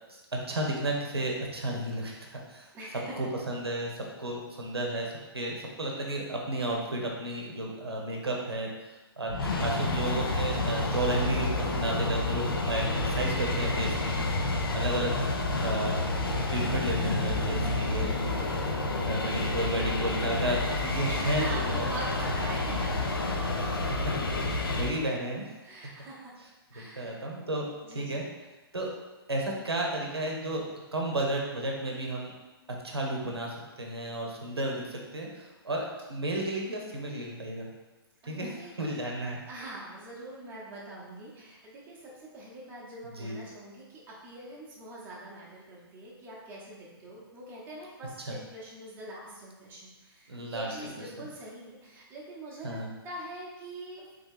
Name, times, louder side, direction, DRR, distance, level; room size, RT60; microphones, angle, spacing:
voice 1, 0.5-2.7 3.2-8.7 9.2-14.2 14.7-15.1 15.6-15.9 16.5-18.4 19.0-21.7 23.5-23.8 24.6-25.5 27.0-27.7 27.9-28.2 28.7-28.9 29.3-30.6 30.9-32.3 32.8-37.7 38.3-39.4 43.2-43.3 48.3-48.4 50.3-50.9 52.6-52.9, right 1 dB, 75° right, -1 dB, 0.9 m, -33 dB
voice 2, 2.7-3.3 21.1-23.1 25.6-26.3 26.7-27.2 27.8-28.2 38.2-38.8 39.5-54.2, right 2 dB, 15° right, -6 dB, 1.0 m, -43 dB
sound 1, 9.3-24.9, left 2 dB, 65° left, 0.7 m, -29 dB
3.7 x 3.3 x 3.7 m, 1.1 s
figure-of-eight pair, 120°, 13 cm